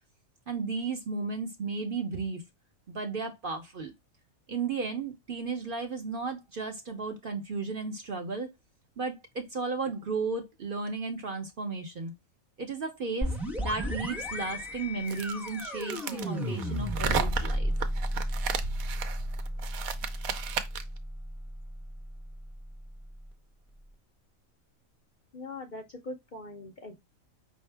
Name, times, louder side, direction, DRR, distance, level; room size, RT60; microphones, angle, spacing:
voice 1, 0.5-2.4 2.9-3.9 4.5-8.5 9.0-12.1 12.6-17.7, right 4 dB, 50° right, 0.7 m, -34 dB
sound 1, 13.2-22.8, equal, ahead, 0.5 m, -33 dB
sound 2, 15.1-21.0, right 8 dB, 85° right, 1.1 m, -34 dB
voice 2, 25.3-27.0, left 2 dB, 50° left, 0.6 m, -42 dB
5.2 x 2.7 x 3.3 m
omnidirectional pair, 1.4 m